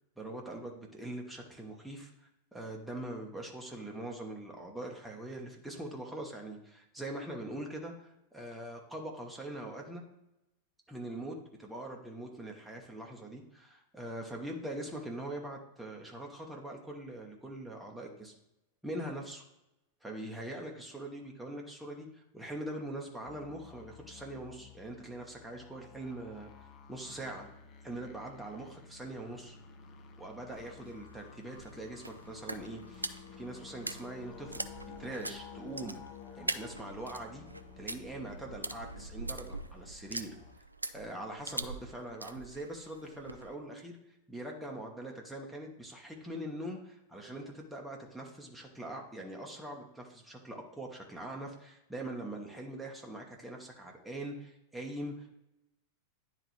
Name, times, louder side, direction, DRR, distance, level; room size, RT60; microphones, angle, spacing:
voice 1, 0.2-10.0 10.9-18.3 18.8-19.4 20.0-26.5 26.9-27.5 27.8-29.6 30.2-34.6 35.0-36.0 36.4-37.4 37.8-40.3 40.9-44.0 44.3-55.4, right 1 dB, 5° right, -1 dB, 1.1 m, -42 dB
sound 1, 23.3-40.5, left 6 dB, 30° left, 0.7 m, -52 dB
sound 2, 30.5-43.5, right 2 dB, 85° right, 0.3 m, -43 dB
10.0 x 3.8 x 3.2 m, 0.87 s
figure-of-eight pair, 90°, 0 cm